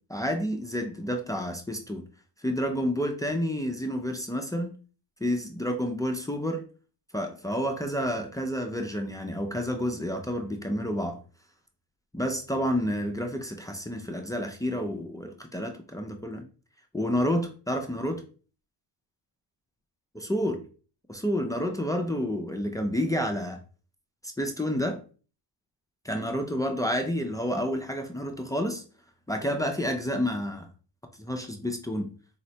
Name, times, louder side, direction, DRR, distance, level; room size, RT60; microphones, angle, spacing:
voice 1, 0.1-2.0 2.4-4.7 5.2-6.6 7.1-11.2 12.1-16.5 16.9-18.2 20.2-20.6 21.1-23.6 24.2-25.0 26.0-28.8 29.3-30.7 31.2-32.1, equal, 10° left, 0.3 m, -29 dB
4.1 x 2.0 x 2.7 m
cardioid pair, 95°, 43 cm